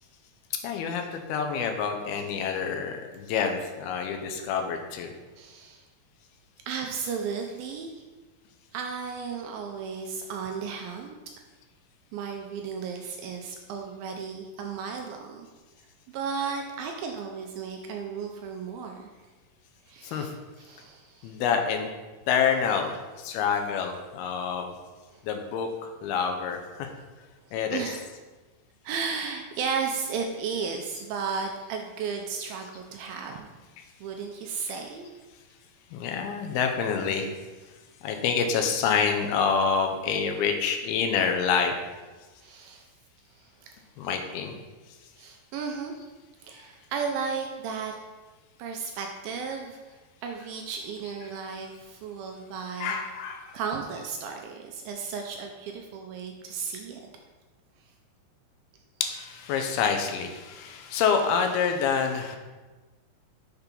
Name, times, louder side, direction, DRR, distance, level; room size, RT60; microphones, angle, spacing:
voice 1, 0.6-5.1 20.0-20.3 21.2-21.9 22.3-24.7 25.2-26.9 27.5-27.8 35.9-37.3 38.0-41.7 44.0-44.5 52.8-53.6 59.0-62.4, left 6 dB, 80° left, 4 dB, 2.5 m, -27 dB
voice 2, 5.4-5.8 6.7-8.0 8.7-11.2 12.1-15.5 16.1-19.0 19.9-20.3 20.6-21.3 25.1-25.2 27.7-28.0 28.8-33.5 34.0-35.1 42.4-42.9 43.4-43.8 45.2-45.9 46.4-48.0 48.6-50.0 50.2-53.0 53.5-57.0, right 5 dB, 80° right, 3 dB, 2.2 m, -34 dB
6.7 x 4.5 x 5.3 m, 1.2 s
omnidirectional pair, 4.6 m